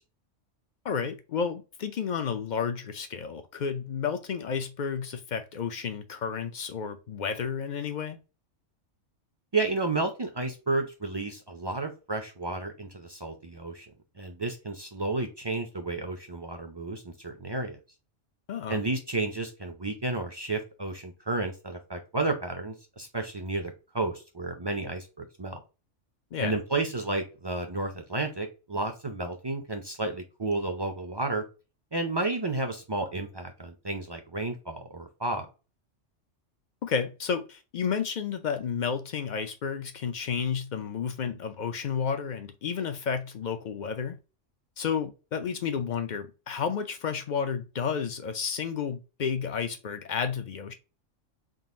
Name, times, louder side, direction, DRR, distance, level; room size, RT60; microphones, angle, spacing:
voice 1, 0.8-8.2 18.5-18.8 26.3-26.6 36.8-44.2 44.8-50.7, left 6 dB, 60° left, 0.4 m, -31 dB
voice 2, 9.5-17.8 18.7-25.6 26.4-31.4 31.9-35.5, right 2 dB, 35° right, 0.4 m, -32 dB
3.9 x 2.4 x 3.7 m
omnidirectional pair, 1.3 m